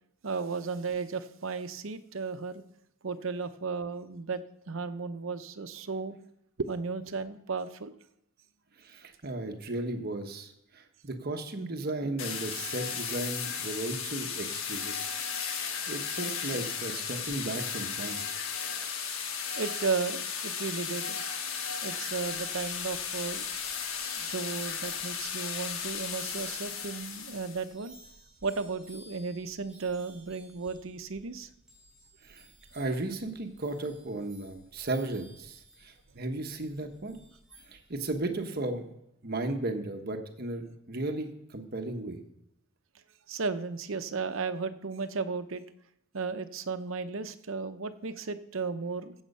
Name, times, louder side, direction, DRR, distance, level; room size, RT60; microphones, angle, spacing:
voice 1, 0.2-2.6 3.0-4.4 4.7-6.2 6.6-7.9 19.6-21.2 21.8-23.4 24.0-27.9 28.4-31.5 43.3-45.6 46.1-49.1, right 4 dB, 70° right, 10 dB, 0.8 m, -34 dB
voice 2, 8.8-14.9 15.9-18.2 21.5-21.7 32.2-32.5 32.7-37.2 37.7-38.8 39.2-42.2, right 2 dB, 50° right, 6 dB, 1.2 m, -35 dB
sound 1, 12.2-27.7, left 6 dB, 80° left, 1.4 m, -35 dB
sound 2, 22.1-38.4, right 1 dB, 5° right, 3.4 m, -58 dB
15.0 x 8.1 x 5.5 m, 0.81 s
head